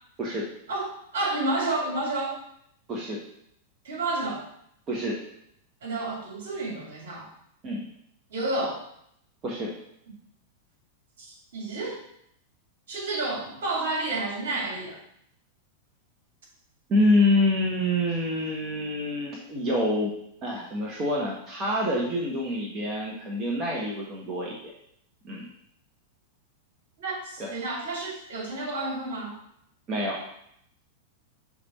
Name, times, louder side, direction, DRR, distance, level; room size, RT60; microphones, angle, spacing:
voice 1, 0.7-2.4 3.8-4.4 5.8-7.3 8.3-8.8 11.2-12.0 12.9-15.0 27.0-29.4, right 2 dB, 70° right, -3 dB, 2.5 m, -30 dB
voice 2, 16.9-20.1 20.4-24.7 25.2-25.5 27.4-27.5 29.9-30.2, left 1 dB, 30° right, -3 dB, 1.3 m, -26 dB
6.7 x 3.5 x 4.3 m, 0.73 s
figure-of-eight pair, 95°, 0 cm